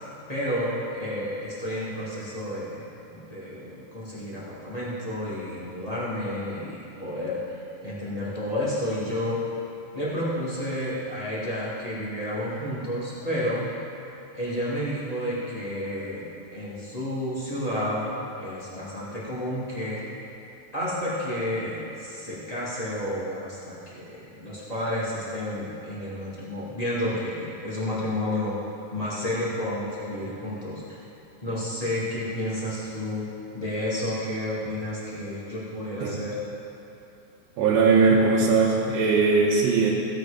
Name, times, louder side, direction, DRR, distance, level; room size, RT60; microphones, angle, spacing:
voice 1, 0.3-7.6 7.8-9.4 9.9-13.7 14.3-18.1 18.4-20.0 20.7-28.5 28.9-31.0 31.4-33.3 33.5-36.4, left 1 dB, 15° left, -9 dB, 1.4 m, -31 dB
voice 2, 37.6-39.9, right 4 dB, 80° right, -5 dB, 3.0 m, -20 dB
16.5 x 7.8 x 5.2 m, 2.9 s
omnidirectional pair, 5.2 m